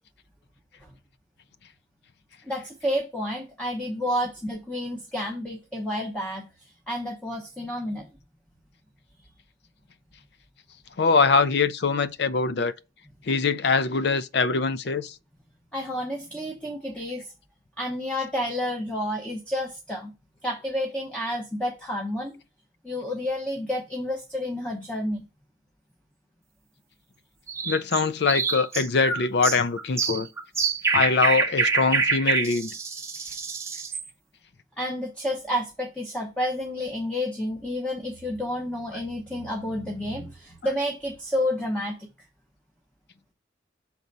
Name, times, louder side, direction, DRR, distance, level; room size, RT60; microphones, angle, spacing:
voice 1, 2.5-6.5 6.9-8.1 15.7-17.3 17.8-20.1 20.4-22.4 22.8-25.3 34.8-41.9, left 1 dB, 5° left, 1.0 m, -30 dB
voice 2, 11.0-12.7 13.3-15.1 27.7-30.3 30.9-32.7, left 4 dB, 65° left, 0.5 m, -23 dB
sound 1, 27.5-34.1, right 4 dB, 15° right, 0.8 m, -26 dB
5.9 x 4.0 x 5.3 m
head